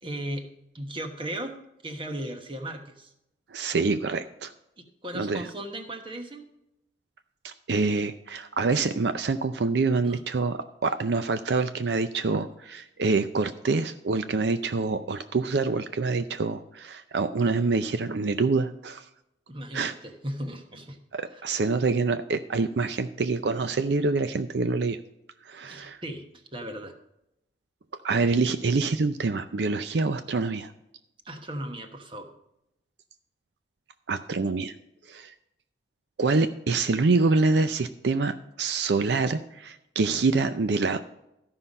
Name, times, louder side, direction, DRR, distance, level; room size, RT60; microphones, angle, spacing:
voice 1, 0.0-1.6 1.8-3.1 4.8-6.5 10.0-10.2 19.5-21.5 25.6-27.0 31.2-32.3, right 1 dB, 30° right, 6 dB, 1.2 m, -37 dB
voice 2, 3.5-4.5 5.1-5.5 7.4-19.1 19.7-19.9 21.1-25.0 25.4-26.0 28.0-30.7 34.1-34.7 35.1-35.3 36.2-41.0, right 3 dB, 70° right, 10 dB, 0.5 m, -26 dB
13.5 x 5.7 x 5.4 m, 0.84 s
head